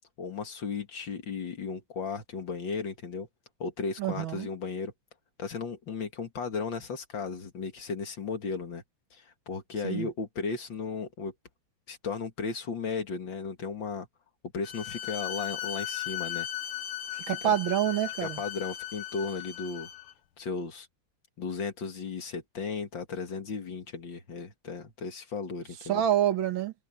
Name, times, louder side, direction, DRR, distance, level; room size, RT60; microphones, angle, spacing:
voice 1, 0.2-3.3 3.6-4.9 5.4-8.8 9.1-11.3 11.9-14.1 14.5-16.5 17.3-17.4 18.2-19.9 20.4-20.9 21.4-26.0, left 5 dB, 65° left, 2.7 m, -35 dB
voice 2, 4.0-4.5 9.8-10.1 17.1-18.4 25.8-26.7, right 11 dB, 80° right, 2.1 m, -27 dB
Bowed string instrument, 14.6-20.1, left 12 dB, 85° left, 1.9 m, -37 dB
omnidirectional pair, 2.2 m